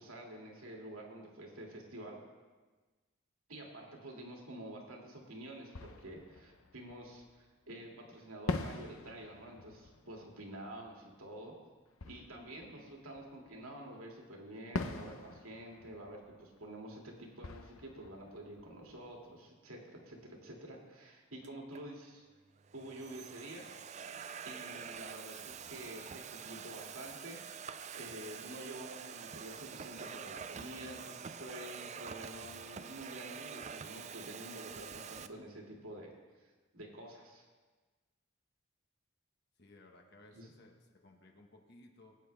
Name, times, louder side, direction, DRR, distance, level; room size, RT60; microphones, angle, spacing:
voice 1, 0.0-2.2 3.5-11.6 12.0-22.3 22.7-23.6 24.4-36.1 36.7-37.5 40.3-40.5, right 1 dB, 90° right, -1 dB, 2.4 m, -48 dB
Fireworks, 5.1-5.2 5.7-7.7 8.5-13.8 14.7-19.5, left 3 dB, 85° left, 0.8 m, -45 dB
Domestic sounds home sounds, 21.4-21.8 22.6-35.3, right 7 dB, 35° right, 0.3 m, -46 dB
voice 2, 39.6-42.2, left 2 dB, 50° left, 2 dB, 1.3 m, -59 dB
19.5 x 9.2 x 3.4 m, 1.3 s
head